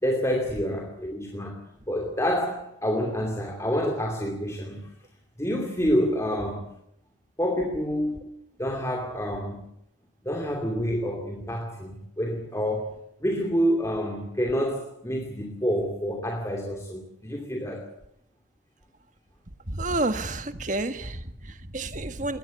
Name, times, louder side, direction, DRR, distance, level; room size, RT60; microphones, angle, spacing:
voice 1, 0.0-4.9 5.4-6.7 7.4-8.2 8.6-9.7 10.2-17.9, equal, 15° left, 2.7 m, -28 dB
voice 2, 19.7-22.4, right 2 dB, 40° right, 1.6 m, -30 dB
22.0 x 18.5 x 8.4 m
head